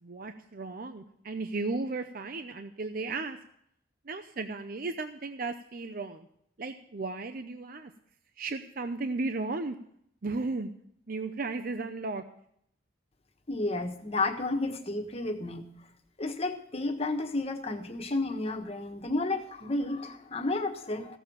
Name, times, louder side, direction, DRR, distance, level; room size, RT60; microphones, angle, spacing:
voice 1, 0.0-3.4 4.0-6.3 6.6-7.9 8.4-9.8 10.2-10.7 11.1-12.2, right 3 dB, 50° right, 8 dB, 0.6 m, -35 dB
voice 2, 13.5-15.6 16.2-21.2, left 2 dB, 35° left, 4 dB, 1.3 m, -32 dB
15.5 x 7.1 x 7.1 m, 0.71 s
head